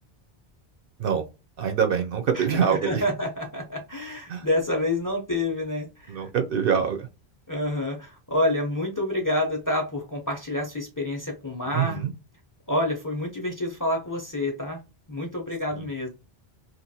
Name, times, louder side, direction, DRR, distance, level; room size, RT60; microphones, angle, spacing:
voice 1, 1.6-3.0 4.3-4.5 6.1-7.1 11.7-12.1 15.7-15.9, right 7 dB, 65° right, 0.7 m, -25 dB
voice 2, 2.3-6.3 7.5-12.0 12.7-14.8 15.1-16.1, left 1 dB, 25° left, 0.6 m, -28 dB
2.9 x 2.5 x 2.6 m
omnidirectional pair, 1.1 m